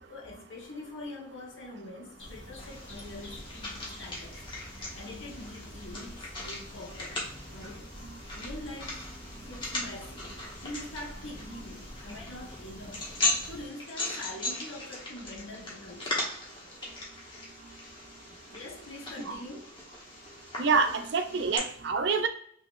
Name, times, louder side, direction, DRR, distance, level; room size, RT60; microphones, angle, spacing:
voice 1, 0.1-4.4 4.9-7.2 7.5-7.9 8.3-9.1 9.4-13.2 13.5-16.2 18.3-19.8, left 1 dB, 80° left, -2 dB, 1.1 m, -44 dB
sound 1, 2.2-13.7, equal, 60° left, 1.4 m, -47 dB
sound 2, 2.6-21.6, left 2 dB, 25° left, 1.0 m, -38 dB
voice 2, 20.6-22.3, right 4 dB, 60° right, 9 dB, 0.4 m, -26 dB
3.6 x 2.7 x 2.5 m, 0.66 s
head